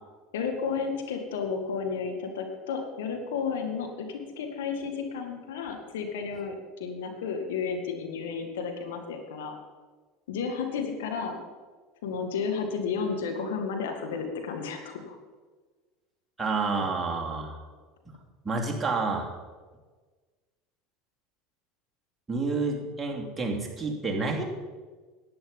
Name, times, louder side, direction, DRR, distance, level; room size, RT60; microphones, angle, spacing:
voice 1, 0.3-9.6 10.3-11.4 12.0-15.2, left 5 dB, 75° left, 4 dB, 1.7 m, -32 dB
voice 2, 16.4-17.6 18.4-19.3 22.3-24.4, right 3 dB, 20° right, -1 dB, 2.7 m, -29 dB
11.0 x 9.6 x 5.4 m, 1.4 s
hypercardioid pair, 80°, 0 cm